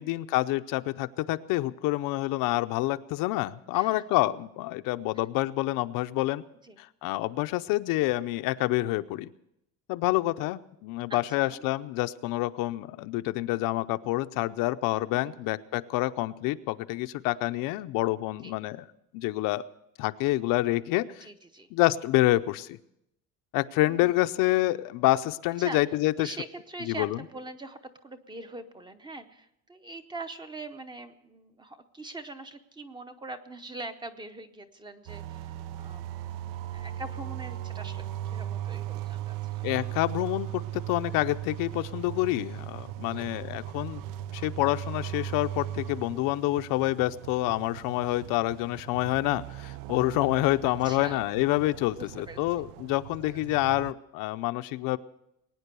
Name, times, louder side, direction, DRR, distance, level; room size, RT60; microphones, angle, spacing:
voice 1, 0.0-6.4 6.8-9.3 9.9-18.9 19.1-19.6 20.0-21.3 21.7-22.8 23.5-26.4 26.8-27.2 39.6-44.0 44.3-55.0, left 17 dB, 80° left, 11 dB, 0.7 m, -27 dB
voice 2, 11.1-11.6 15.2-15.4 18.4-18.5 21.2-21.7 23.8-24.2 25.6-25.8 26.2-35.5 35.8-36.1 36.7-39.4 43.0-43.3 50.8-51.2 52.0-52.4 52.9-53.4, right 2 dB, 15° right, 9 dB, 0.7 m, -42 dB
sound 1, 35.1-53.9, right 12 dB, 75° right, 0.6 m, -38 dB
21.0 x 9.6 x 6.8 m, 0.81 s
cardioid pair, 170°, 33 cm